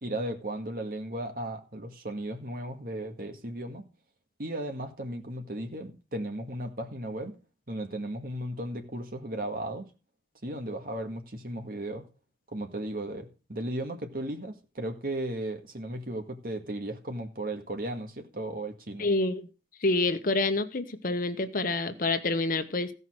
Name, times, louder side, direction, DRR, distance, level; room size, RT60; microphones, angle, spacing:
voice 1, 0.0-3.8 4.4-7.4 7.7-9.9 10.4-12.1 12.5-19.1, right 1 dB, 55° right, 1.9 m, -35 dB
voice 2, 19.0-19.5 19.8-22.9, left 2 dB, 50° left, 1.0 m, -27 dB
15.0 x 5.6 x 6.2 m
head